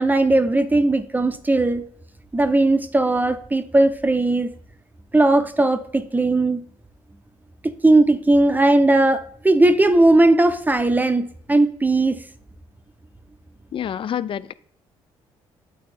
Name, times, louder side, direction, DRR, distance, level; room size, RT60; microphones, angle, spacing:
voice 1, 0.0-1.8 2.3-4.5 5.1-6.6 7.6-12.2, right 2 dB, 15° right, 0.6 m, -18 dB
voice 2, 13.7-14.5, left 9 dB, 45° left, 0.4 m, -27 dB
8.5 x 3.1 x 4.4 m
supercardioid pair, 70°, 12 cm